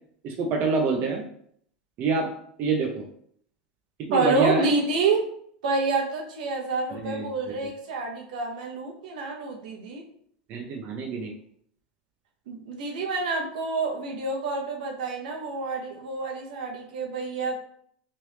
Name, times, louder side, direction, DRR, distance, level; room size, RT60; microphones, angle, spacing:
voice 1, 0.2-1.2 2.0-2.3 2.6-3.1 4.0-4.7 6.9-7.3 10.5-11.3, right 4 dB, 45° right, 1 dB, 0.6 m, -26 dB
voice 2, 4.1-5.3 5.6-10.0 12.5-17.6, right 3 dB, 80° right, 1 dB, 0.8 m, -28 dB
3.1 x 2.6 x 3.3 m, 0.65 s
hypercardioid pair, 105°, 4 cm